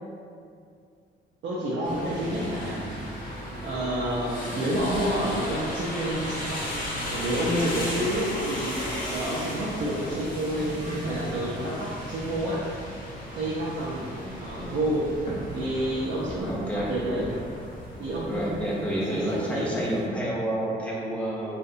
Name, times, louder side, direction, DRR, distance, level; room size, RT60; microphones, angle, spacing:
voice 1, 1.4-3.0 3.6-8.8 9.1-12.7 13.3-14.1 14.4-15.1 15.5-17.3 18.0-18.8 19.1-19.9, right 1 dB, 65° right, -7 dB, 0.4 m, -29 dB
sound 1, 1.8-20.1, equal, 45° left, 0.7 m, -36 dB
voice 2, 1.9-2.5 14.2-14.8 16.4-16.9 18.3-21.6, right 1 dB, 5° left, -5 dB, 0.5 m, -30 dB
sound 2, 4.8-18.7, equal, 40° right, 0.8 m, -43 dB
2.6 x 2.1 x 2.5 m, 2.3 s
cardioid pair, 90°, 20 cm